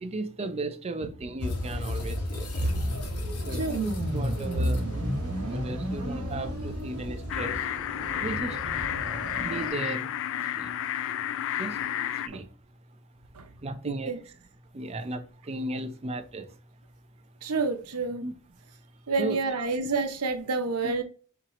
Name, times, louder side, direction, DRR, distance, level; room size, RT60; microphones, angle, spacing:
voice 1, 0.0-2.7 3.5-3.7 4.1-4.9 5.5-7.6 8.2-8.6 9.4-10.1 10.6-10.7 11.6-11.8 12.2-12.5 13.6-14.1 14.7-15.2 15.5-16.5 18.2-18.3 19.2-19.7, right 2 dB, 30° right, 0.5 m, -35 dB
sound 1, 1.4-7.6, left 2 dB, 85° left, 1.3 m, -35 dB
sound 2, 2.6-9.7, right 1 dB, 75° right, 1.4 m, -33 dB
Frogs Deafening, 7.3-12.3, left 11 dB, 60° left, 0.3 m, -31 dB
voice 2, 13.8-14.2 17.4-18.2 19.1-21.0, right 3 dB, 90° right, 0.8 m, -29 dB
4.6 x 2.9 x 3.6 m
head